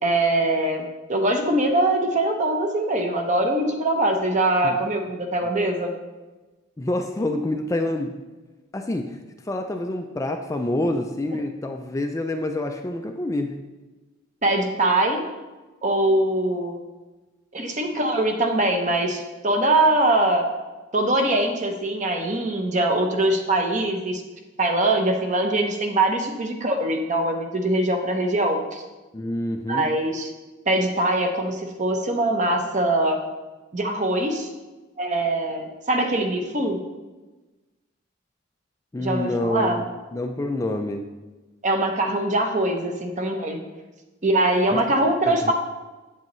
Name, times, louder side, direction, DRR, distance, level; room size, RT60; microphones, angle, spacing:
voice 1, 0.0-5.9 14.4-15.3 15.8-16.8 17.5-20.5 20.9-24.2 24.6-28.8 29.7-30.3 30.7-33.2 33.7-34.5 35.0-36.8 39.0-39.8 41.6-43.6 44.2-45.5, right 1 dB, 35° right, 4 dB, 0.8 m, -22 dB
voice 2, 6.8-8.1 8.7-9.2 9.4-13.5 29.1-29.9 38.9-39.8 40.1-41.0 45.2-45.5, left 1 dB, 15° left, 4 dB, 0.3 m, -27 dB
8.3 x 7.7 x 3.1 m, 1.2 s
head